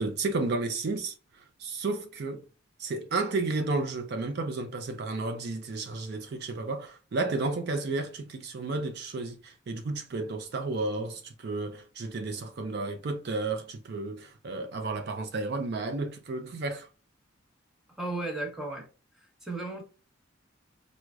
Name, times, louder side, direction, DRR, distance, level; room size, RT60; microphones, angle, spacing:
voice 1, 0.0-2.5 2.8-16.9, right 3 dB, 55° right, 0.4 m, -32 dB
voice 2, 17.9-18.9 19.1-19.8, right 2 dB, ahead, 0.8 m, -35 dB
4.6 x 2.1 x 2.3 m
head